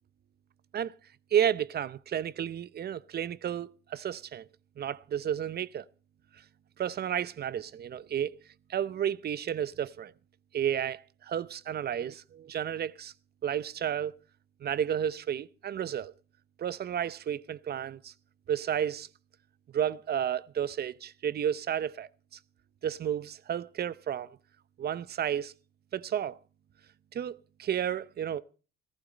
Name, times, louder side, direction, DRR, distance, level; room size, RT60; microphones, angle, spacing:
voice 1, 1.3-4.5 4.8-5.9 6.8-8.4 8.7-10.1 10.5-13.1 13.4-14.2 14.6-16.1 16.6-18.1 18.5-19.1 19.7-22.1 22.8-24.3 24.8-25.5 25.9-26.4 27.1-28.4, right 9 dB, 55° right, 0.7 m, -32 dB
15.0 x 14.5 x 4.1 m
cardioid pair, 90°, 20 cm